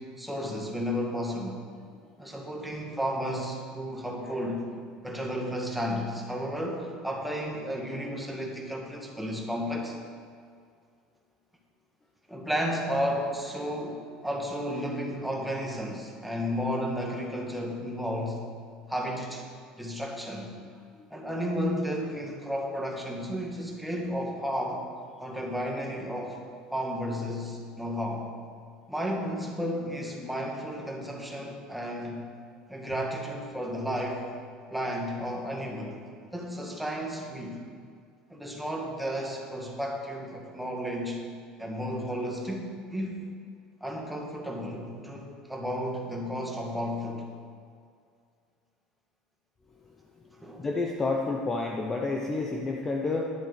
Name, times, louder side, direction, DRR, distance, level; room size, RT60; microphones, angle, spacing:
voice 1, 0.0-1.6 2.2-4.7 5.0-10.0 12.3-18.4 18.9-19.5 19.8-20.5 21.1-24.8 25.2-26.4 26.7-28.3 28.9-32.2 32.7-34.3 34.7-36.0 36.3-37.6 38.3-41.2 41.6-43.2 43.8-47.3 50.4-50.7, equal, ahead, -1 dB, 1.6 m, -33 dB
voice 2, 50.6-53.3, left 3 dB, 20° left, 0 dB, 0.8 m, -29 dB
11.0 x 7.6 x 6.7 m, 2.2 s
cardioid pair, 150°, 2 cm